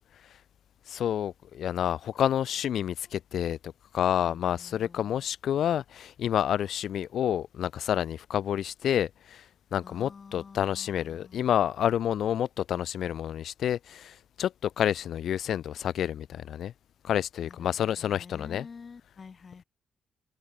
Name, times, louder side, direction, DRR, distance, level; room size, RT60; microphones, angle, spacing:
voice 1, 0.9-9.4 9.7-16.7 17.0-18.7, left 10 dB, 70° left, 0.3 m, -29 dB
voice 2, 4.2-5.2 9.8-11.6 17.4-19.6, left 5 dB, 40° left, 1.1 m, -49 dB
cardioid pair, 105°, 0 cm